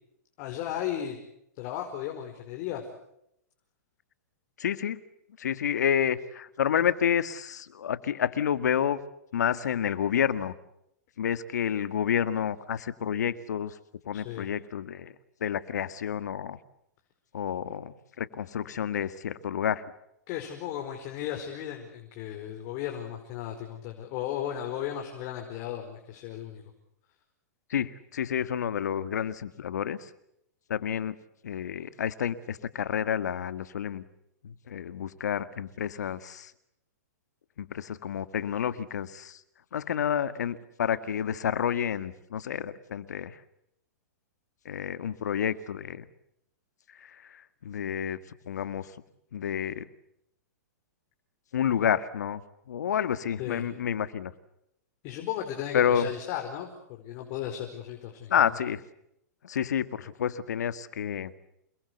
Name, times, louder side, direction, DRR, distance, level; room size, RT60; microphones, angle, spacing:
voice 1, 0.4-1.2 1.5-2.8 14.1-14.5 20.3-26.6 53.4-53.7 55.0-58.3, left 10 dB, 45° left, 3 dB, 4.9 m, -35 dB
voice 2, 4.6-5.0 5.4-9.0 9.3-10.5 11.2-13.7 14.1-15.1 15.4-16.6 17.3-19.8 27.7-30.1 30.7-31.2 31.4-34.0 34.4-36.5 37.6-39.4 39.7-43.4 44.7-46.1 47.0-48.2 48.5-48.9 49.3-49.9 51.5-52.4 52.7-54.3 55.7-56.1 58.3-58.8 59.4-61.3, left 8 dB, 75° left, 13 dB, 1.9 m, -29 dB
28.5 x 21.5 x 8.2 m, 0.77 s
hypercardioid pair, 125°, 9 cm